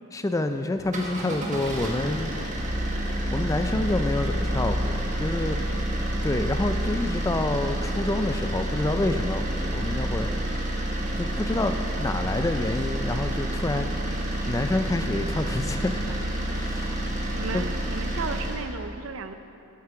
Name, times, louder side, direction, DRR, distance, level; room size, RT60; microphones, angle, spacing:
voice 1, 0.1-2.3 3.3-5.6 6.2-10.4 11.2-13.9 14.5-16.1 16.5-17.0 17.5-17.6, left 2 dB, 15° left, 7 dB, 0.3 m, -28 dB
sound 1, 0.8-18.7, right 1 dB, 35° right, 1.3 m, -29 dB
voice 2, 17.3-19.3, right 4 dB, 60° right, 10 dB, 0.5 m, -34 dB
9.4 x 8.4 x 5.8 m, 2.8 s
head